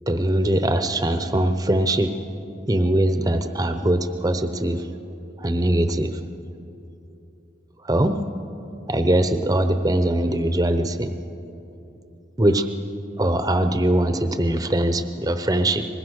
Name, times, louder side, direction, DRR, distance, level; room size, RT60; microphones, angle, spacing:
voice 1, 0.1-2.1 2.7-4.9 5.4-6.2 7.8-8.2 8.9-11.1 12.4-12.7 13.2-15.9, right 1 dB, 20° right, 8 dB, 0.9 m, -21 dB
23.5 x 21.0 x 6.5 m, 2.9 s
head